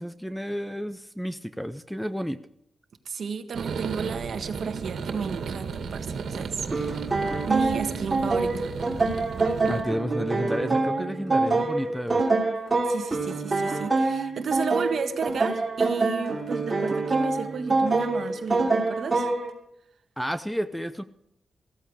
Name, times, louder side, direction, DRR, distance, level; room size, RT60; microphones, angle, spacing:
voice 1, 0.0-2.4 9.6-12.3 20.2-21.0, equal, ahead, 11 dB, 0.6 m, -31 dB
voice 2, 3.0-7.1 7.4-8.7 12.8-19.3, right 6 dB, 60° right, 7 dB, 1.6 m, -33 dB
sound 1, 3.5-9.8, right 5 dB, 80° right, 2.2 m, -34 dB
sound 2, 6.7-19.5, right 3 dB, 20° right, 2.9 m, -26 dB
15.5 x 14.5 x 4.8 m, 0.75 s
wide cardioid pair, 150°, 0 cm